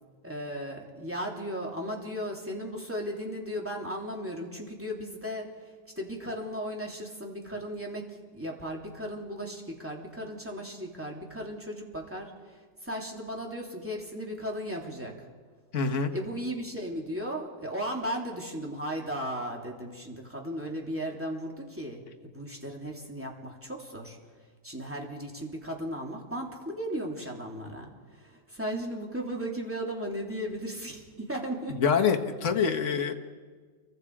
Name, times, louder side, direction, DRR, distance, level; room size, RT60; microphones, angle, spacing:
voice 1, 0.2-5.5 5.9-15.3 16.1-22.0 22.3-24.2 24.6-31.8, equal, 5° right, -1 dB, 3.3 m, -36 dB
voice 2, 15.7-16.1 31.7-33.1, left 6 dB, 45° left, 4 dB, 1.8 m, -25 dB
30.0 x 23.0 x 5.0 m, 1.5 s
omnidirectional pair, 1.9 m